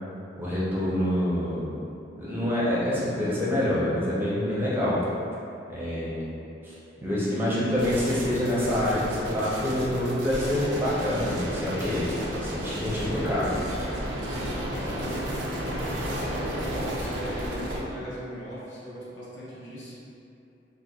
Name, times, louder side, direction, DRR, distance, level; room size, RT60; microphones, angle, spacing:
voice 1, 0.4-1.7 2.2-5.1 5.7-6.3 6.6-6.7 7.0-13.5, left 1 dB, 10° right, -9 dB, 0.6 m, -26 dB
sound 1, 7.8-17.8, right 1 dB, 75° right, 0.5 m, -32 dB
voice 2, 13.2-13.6 14.4-20.0, equal, 80° left, -8 dB, 0.8 m, -40 dB
4.1 x 2.1 x 2.2 m, 2.7 s
head